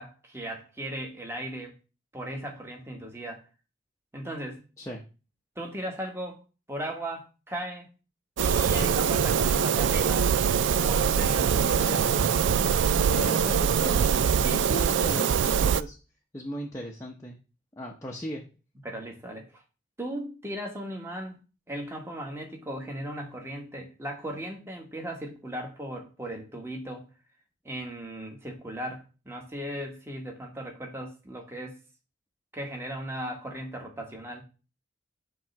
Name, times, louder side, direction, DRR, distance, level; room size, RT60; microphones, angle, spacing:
voice 1, 0.0-1.7 2.1-3.4 4.1-4.6 5.5-6.4 6.7-7.9 8.4-10.5 10.8-12.2 14.4-14.8 18.8-19.6 20.0-21.4 21.7-27.1 27.6-31.8 32.5-34.4, right 1 dB, 15° right, 1.3 m, -37 dB
sound 1, 8.4-15.8, right 7 dB, 70° right, 0.3 m, -23 dB
voice 2, 12.9-16.0 16.3-17.4 17.8-18.4, equal, 15° left, 0.8 m, -37 dB
7.4 x 3.1 x 5.7 m
head